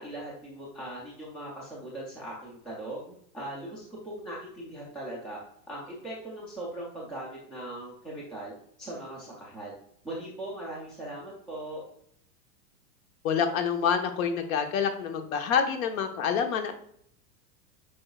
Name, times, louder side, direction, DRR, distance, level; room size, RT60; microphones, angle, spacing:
voice 1, 0.0-5.4 5.7-8.5 8.8-9.7 10.0-11.8, right 1 dB, ahead, -5 dB, 0.4 m, -39 dB
voice 2, 13.2-16.7, left 7 dB, 55° left, 7 dB, 1.1 m, -27 dB
8.6 x 5.0 x 2.3 m, 0.68 s
supercardioid pair, 160°, 48 cm